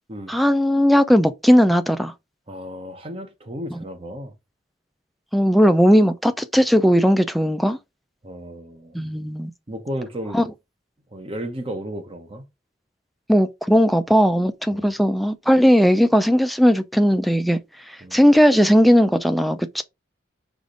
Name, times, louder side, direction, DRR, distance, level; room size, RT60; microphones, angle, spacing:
voice 1, 0.3-2.1 5.3-7.8 8.9-9.5 10.3-10.4 13.3-17.6 18.1-19.8, equal, ahead, 0.4 m, -17 dB
voice 2, 2.5-4.3 8.2-9.0 9.7-10.5 11.1-12.4 14.7-14.9 18.0-18.2, equal, 30° right, 0.9 m, -33 dB
4.9 x 2.5 x 3.8 m
head